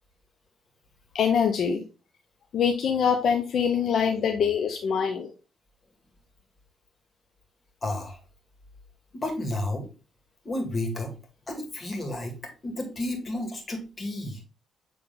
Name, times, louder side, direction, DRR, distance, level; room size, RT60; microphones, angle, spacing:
voice 1, 1.1-1.8 2.5-5.3, left 7 dB, 60° left, 4 dB, 0.7 m, -24 dB
voice 2, 7.8-8.2 9.1-9.9 10.4-11.1 11.5-12.4 12.6-14.4, left 1 dB, 35° left, 3 dB, 2.1 m, -31 dB
7.7 x 3.3 x 3.8 m, 0.33 s
cardioid pair, 90°, 0 cm